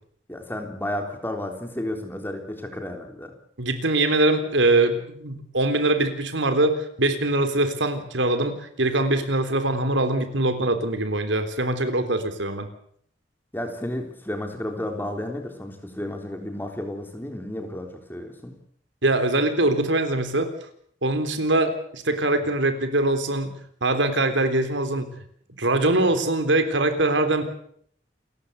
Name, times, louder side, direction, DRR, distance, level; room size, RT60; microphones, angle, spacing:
voice 1, 0.3-3.3 13.5-18.5, left 1 dB, 10° left, 4 dB, 3.6 m, -32 dB
voice 2, 3.6-12.7 19.0-20.5 21.0-23.5 23.8-25.1 25.6-27.4, right 2 dB, 80° right, 8 dB, 3.7 m, -23 dB
28.5 x 14.5 x 8.3 m, 0.64 s
head